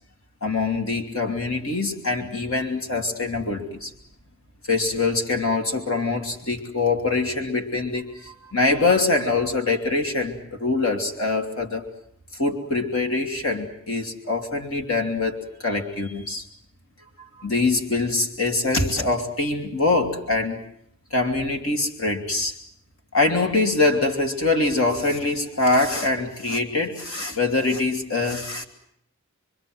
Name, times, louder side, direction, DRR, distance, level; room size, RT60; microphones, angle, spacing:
voice 1, 0.4-3.9 4.7-11.9 12.4-16.5 17.2-20.6 21.1-22.6 23.1-28.7, left 3 dB, 70° left, 4 dB, 3.0 m, -24 dB
25.5 x 25.0 x 7.8 m, 0.71 s
head